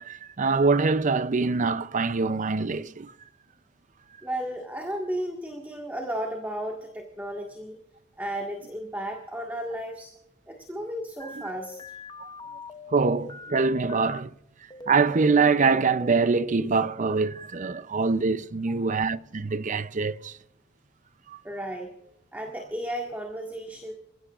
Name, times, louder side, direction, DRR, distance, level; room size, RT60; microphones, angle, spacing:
voice 1, 0.0-3.1 12.2-12.3 12.9-14.3 14.9-20.3 21.3-21.4, right 4 dB, 40° right, 0.5 m, -24 dB
voice 2, 4.2-7.8 8.2-10.1 10.5-12.0 18.7-18.8 21.4-21.9 22.3-23.9, right 1 dB, 10° right, 1.7 m, -34 dB
sound 1, 11.2-14.2 14.7-16.3, left 2 dB, 20° left, 0.7 m, -42 dB
28.0 x 16.5 x 2.5 m
head